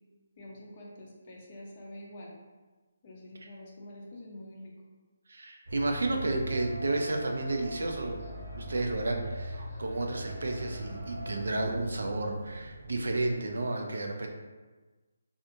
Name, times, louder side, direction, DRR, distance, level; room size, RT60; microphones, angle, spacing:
voice 1, 0.4-2.3 3.0-4.7, left 1 dB, 30° left, -3 dB, 0.5 m, -46 dB
voice 2, 5.3-14.3, right 2 dB, 75° right, 3 dB, 0.4 m, -32 dB
sound 1, 5.7-13.3, right 1 dB, 55° right, 0.8 m, -41 dB
sound 2, 6.5-11.5, equal, 15° right, 0.7 m, -45 dB
2.4 x 2.4 x 2.7 m, 1.3 s
hypercardioid pair, 170°, 0 cm